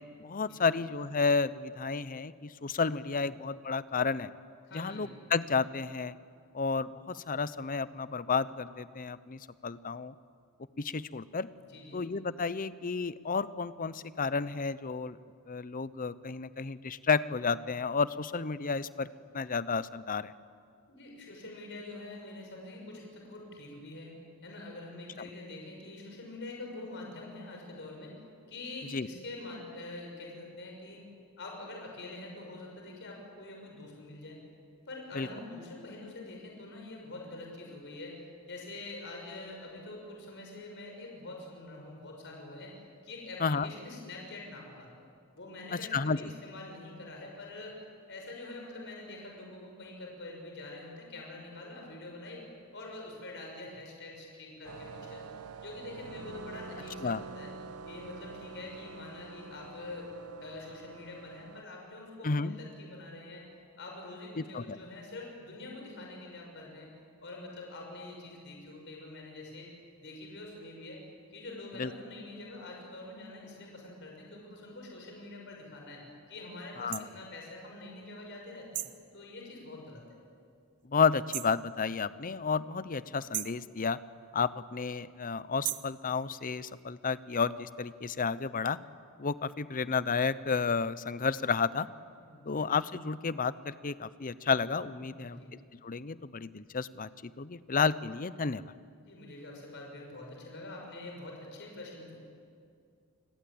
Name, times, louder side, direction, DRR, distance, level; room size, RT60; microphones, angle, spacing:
voice 1, 0.2-4.3 4.7-6.2 6.5-10.1 10.8-11.5 11.9-15.2 15.5-19.1 19.3-20.3 28.9-29.1 35.2-35.3 43.4-43.7 45.7-46.3 57.0-57.2 62.2-62.6 64.4-64.8 71.8-71.9 76.8-77.1 80.9-84.0 84.3-88.8 89.2-91.9 92.5-95.4 95.8-98.6, left 5 dB, 40° left, 16 dB, 0.7 m, -31 dB
voice 2, 4.7-5.1 11.6-12.0 20.9-24.1 24.4-28.1 28.5-31.0 31.4-34.4 34.9-38.2 38.5-42.7 43.0-44.9 45.3-47.8 48.1-52.4 52.7-55.2 55.6-57.5 57.9-60.1 60.4-63.4 63.8-66.9 67.2-69.7 70.0-71.0 71.3-76.0 76.3-78.8 79.1-80.2 92.2-92.7 95.0-95.5 99.0-102.1, left 2 dB, 55° left, 0 dB, 6.1 m, -45 dB
sound 1, 54.6-61.6, right 4 dB, 90° right, 0.9 m, -46 dB
sound 2, 76.9-77.1 78.7-79.0 81.3-81.6 83.3-83.6 85.6-86.0, right 14 dB, 55° right, 0.8 m, -36 dB
28.0 x 21.0 x 8.7 m, 2.3 s
head